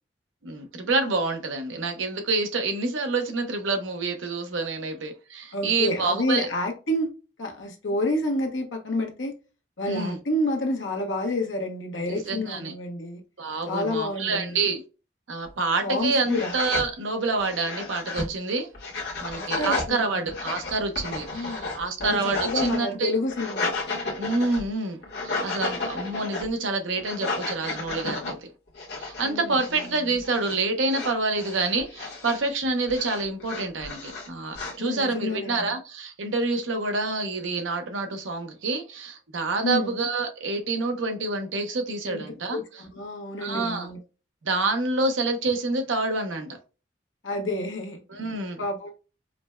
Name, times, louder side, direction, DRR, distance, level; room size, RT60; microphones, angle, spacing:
voice 1, 0.4-6.5 9.9-10.2 12.1-12.7 13.4-14.8 15.3-18.7 19.2-23.1 24.2-25.0 25.2-28.5 29.0-42.6 43.4-43.9 44.4-46.6 48.1-48.6, right 3 dB, 85° right, 0.7 m, -27 dB
voice 2, 5.5-7.1 7.4-9.3 9.8-13.2 13.7-14.6 15.8-16.5 19.3-20.3 21.3-21.7 22.0-23.7 29.2-29.6 34.8-35.7 39.6-39.9 42.1-42.2 42.5-44.0 47.2-48.0 48.6-48.9, left 1 dB, 85° left, 0.9 m, -29 dB
sound 1, 15.5-15.6 16.0-16.9 17.4-18.3 18.7-19.9 20.3-22.8 23.2-24.7 25.0-26.5 27.0-28.3 28.7-29.3 29.5-29.9 30.2-30.6 30.8-32.5 32.9-34.8, left 3 dB, 60° left, 1.1 m, -33 dB
5.0 x 2.1 x 2.2 m
head